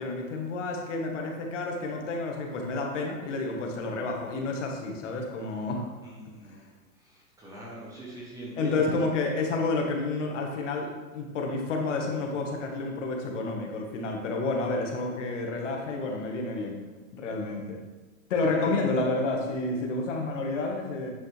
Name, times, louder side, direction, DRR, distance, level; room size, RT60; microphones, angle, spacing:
voice 1, 0.0-5.9 6.5-6.6 8.6-16.8 17.1-17.8 18.3-21.1, left 3 dB, 50° left, 1 dB, 1.6 m, -30 dB
voice 2, 6.0-8.9 18.4-18.8, right 1 dB, 5° right, -5 dB, 1.0 m, -42 dB
9.2 x 5.8 x 3.4 m, 1.2 s
hypercardioid pair, 150°, 46 cm